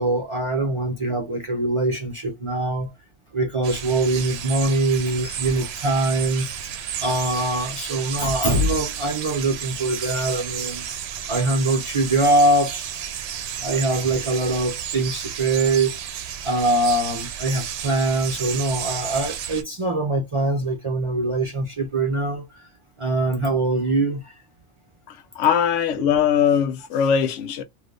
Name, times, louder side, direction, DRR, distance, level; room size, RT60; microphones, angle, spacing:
voice 1, 0.0-2.9 3.3-6.7 7.0-10.8 11.3-12.9 13.6-16.0 16.4-22.6 23.0-24.3, right 2 dB, 40° right, 0.5 m, -23 dB
sound 1, 3.6-19.6, right 9 dB, 65° right, 0.8 m, -32 dB
voice 2, 25.4-27.6, left 8 dB, 85° left, 0.9 m, -20 dB
2.7 x 2.5 x 3.3 m
omnidirectional pair, 1.2 m